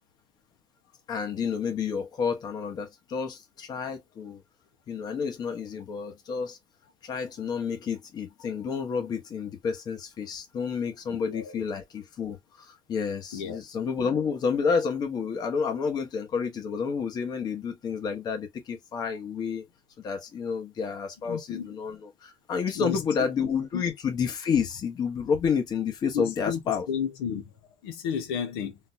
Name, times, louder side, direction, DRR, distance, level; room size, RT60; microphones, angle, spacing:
voice 1, 1.1-4.4 4.9-6.6 7.0-19.7 20.0-26.9, left 6 dB, 35° left, 1.1 m, -30 dB
voice 2, 11.2-11.6 13.3-13.6 21.3-21.7 22.8-23.0 23.7-23.8 26.1-26.6 26.9-27.4 27.8-28.8, left 7 dB, 85° left, 0.8 m, -32 dB
3.8 x 2.4 x 2.6 m
cardioid pair, 140°, 12 cm